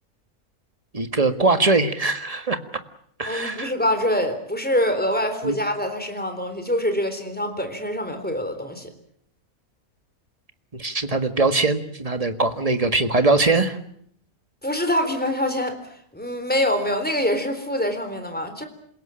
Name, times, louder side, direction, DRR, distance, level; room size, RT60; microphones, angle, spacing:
voice 1, 0.9-2.6 3.2-3.7 5.4-5.5 10.7-13.8, right 3 dB, 25° right, 9 dB, 1.7 m, -21 dB
voice 2, 3.3-8.9 14.6-18.7, left 1 dB, 5° left, 7 dB, 3.8 m, -25 dB
28.0 x 17.0 x 9.0 m, 0.68 s
omnidirectional pair, 1.6 m